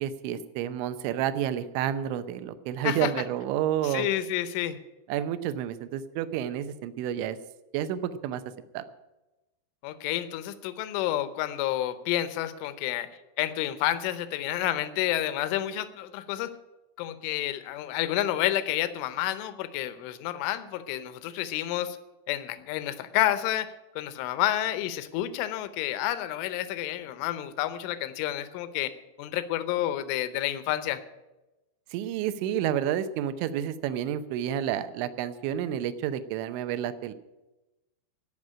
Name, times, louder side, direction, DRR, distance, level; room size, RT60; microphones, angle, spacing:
voice 1, 0.0-4.1 5.1-7.4 7.7-8.4 8.7-8.8 31.9-37.1, right 10 dB, 80° right, 12 dB, 2.9 m, -30 dB
voice 2, 3.8-4.8 9.8-13.1 13.4-16.5 17.0-22.0 22.3-28.9 29.2-31.0, left 13 dB, 80° left, 12 dB, 3.2 m, -29 dB
17.5 x 6.0 x 9.7 m, 1.0 s
omnidirectional pair, 5.7 m